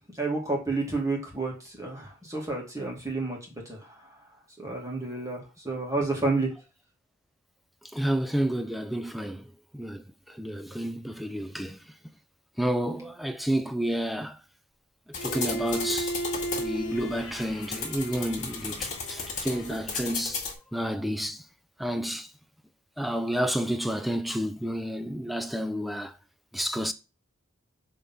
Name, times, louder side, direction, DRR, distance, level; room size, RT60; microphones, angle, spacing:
voice 1, 0.2-3.4 3.7-3.8 4.6-6.5, right 3 dB, 15° right, 2.3 m, -30 dB
voice 2, 7.9-11.8 12.6-14.4 15.1-16.2 16.6-21.4 21.8-22.3 23.0-26.1 26.5-26.9, equal, ahead, 0.5 m, -30 dB
Bowed string instrument, 15.1-20.1, right 2 dB, 65° left, 1.2 m, -36 dB
sound 1, 15.1-20.5, left 4 dB, 40° left, 2.1 m, -35 dB
6.9 x 3.7 x 5.5 m
head